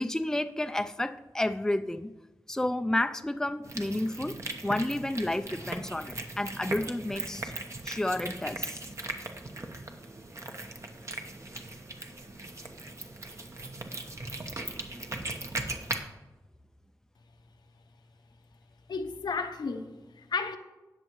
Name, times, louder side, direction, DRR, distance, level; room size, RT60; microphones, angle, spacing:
voice 1, 0.0-2.1 2.5-4.4 4.6-7.5 7.8-8.8, left 1 dB, 10° left, 9 dB, 0.4 m, -31 dB
sound 1, 3.6-16.0, right 2 dB, 45° right, 1.1 m, -39 dB
voice 2, 18.9-20.6, left 4 dB, 85° left, 6 dB, 0.8 m, -33 dB
18.5 x 6.7 x 3.1 m, 1.1 s
wide cardioid pair, 85°, 7 cm